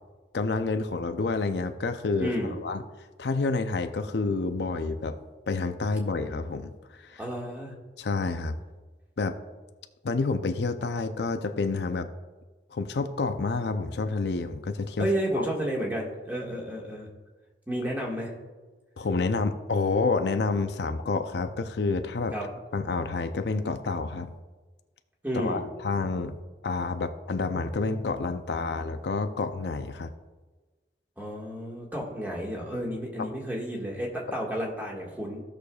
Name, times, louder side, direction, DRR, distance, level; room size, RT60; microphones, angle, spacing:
voice 1, 0.3-2.3 2.6-2.8 3.2-5.2 5.5-6.7 7.0-7.2 8.0-8.6 9.2-9.4 10.0-12.1 12.7-15.1 15.4-15.5 19.0-22.3 22.7-24.3 25.3-30.1 33.2-33.3, left 3 dB, 75° left, 8 dB, 0.5 m, -29 dB
voice 2, 2.2-2.5 7.2-7.7 15.0-17.1 17.7-18.3 22.3-22.5 25.2-25.6 31.2-35.4, equal, 10° right, -3 dB, 1.6 m, -31 dB
16.0 x 6.5 x 2.3 m, 1.3 s
head